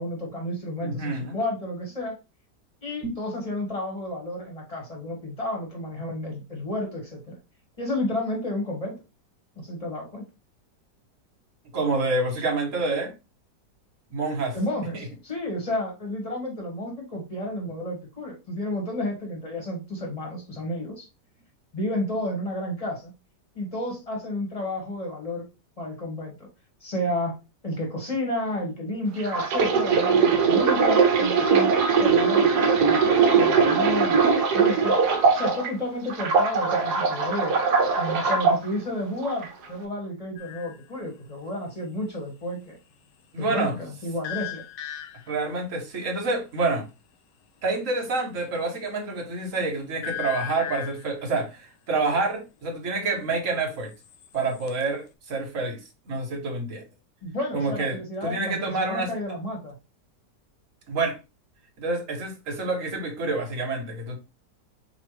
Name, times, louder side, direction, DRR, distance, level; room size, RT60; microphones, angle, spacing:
voice 1, 0.0-2.1 2.8-7.3 7.8-9.0 9.6-10.2 14.5-21.1 21.7-23.1 23.5-25.5 25.8-26.3 26.8-27.4 27.6-35.0 35.3-37.6 38.0-42.8 43.4-44.6 57.2-59.7, left 1 dB, 20° left, -1 dB, 1.8 m, -31 dB
voice 2, 0.8-1.4 3.0-3.1 11.7-13.1 14.1-14.5 14.9-15.1 43.3-43.8 45.3-46.9 47.6-53.9 54.3-55.8 56.1-56.8 57.5-59.1 60.9-61.2 61.8-64.2, right 3 dB, 50° right, 3 dB, 1.5 m, -27 dB
sound 1, 29.2-35.7 36.1-38.6 39.2-39.5, right 5 dB, 70° right, 1.4 m, -21 dB
sound 2, 40.4-40.9 44.2-45.4 50.0-51.2 53.9-54.8, left 11 dB, 90° left, 1.3 m, -36 dB
5.0 x 3.2 x 3.2 m, 0.27 s
omnidirectional pair, 1.8 m